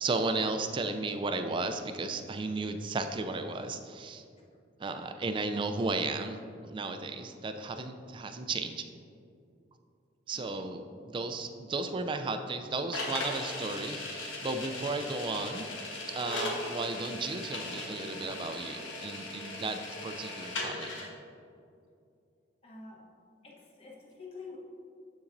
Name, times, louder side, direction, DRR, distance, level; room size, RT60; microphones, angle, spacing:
voice 1, 0.0-4.2 4.8-8.8 10.3-10.9 11.1-15.7 16.1-20.9, right 3 dB, 25° right, 7 dB, 0.3 m, -34 dB
voice 2, 10.3-10.9 22.6-23.1 23.4-24.6, left 4 dB, 30° left, -3 dB, 1.1 m, -48 dB
sound 1, 12.9-21.1, left 2 dB, 85° left, 1.2 m, -38 dB
7.1 x 6.9 x 2.6 m, 2.4 s
head